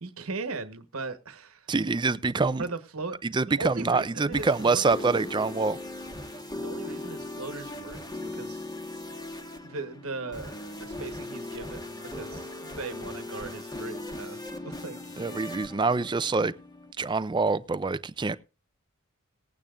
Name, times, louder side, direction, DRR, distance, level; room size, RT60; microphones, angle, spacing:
voice 1, 0.0-1.7 2.6-3.2 3.5-5.1 6.5-8.6 9.6-15.5, right 3 dB, 75° right, 1.2 m, -38 dB
voice 2, 1.7-2.7 3.2-5.8 15.2-16.5 17.0-18.4, right 4 dB, 20° right, 0.4 m, -25 dB
sound 1, 4.1-16.9, left 2 dB, 15° left, 1.5 m, -39 dB
19.5 x 8.8 x 2.5 m
head